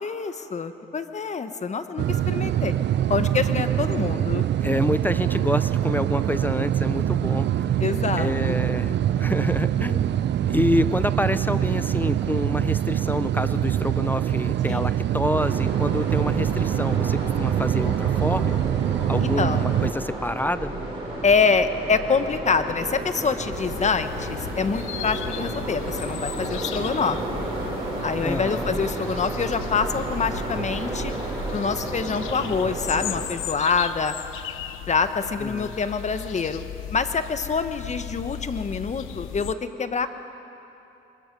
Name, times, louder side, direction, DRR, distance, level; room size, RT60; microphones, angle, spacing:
voice 1, 0.0-2.7 3.1-4.4 7.8-8.6 14.7-14.9 19.4-19.6 21.2-27.2 28.0-31.1 31.5-34.1 34.9-36.6 36.9-40.1, left 5 dB, 35° left, 10 dB, 1.2 m, -25 dB
sound 1, 2.0-19.9, right 11 dB, 60° right, 0.7 m, -24 dB
voice 2, 4.6-7.8 8.2-10.1 10.5-18.6 19.1-20.7 28.2-28.8 35.4-35.8, left 1 dB, 10° left, 13 dB, 0.5 m, -27 dB
sound 2, 15.3-33.2, right 2 dB, 25° right, 6.3 m, -32 dB
sound 3, 23.5-39.5, left 11 dB, 85° left, 0.8 m, -37 dB
23.5 x 21.5 x 5.4 m, 2.9 s
cardioid pair, 90°, 20 cm